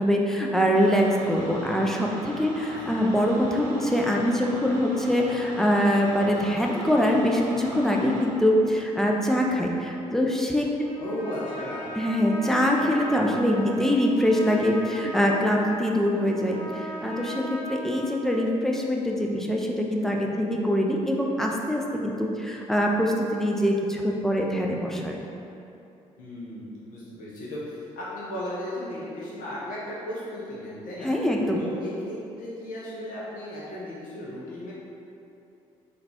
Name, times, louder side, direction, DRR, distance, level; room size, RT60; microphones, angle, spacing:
voice 1, 0.0-10.7 11.9-25.2 31.0-31.6, equal, ahead, -1 dB, 0.4 m, -24 dB
sound 1, 0.7-8.3, right 1 dB, 50° right, 0.6 m, -40 dB
voice 2, 2.7-3.1 11.0-12.0 26.2-31.1 31.6-34.7, left 1 dB, 55° left, -7 dB, 0.6 m, -36 dB
Trumpet, 10.8-18.4, equal, 40° left, 1.4 m, -38 dB
3.7 x 2.3 x 2.8 m, 2.8 s
figure-of-eight pair, 45°, 17 cm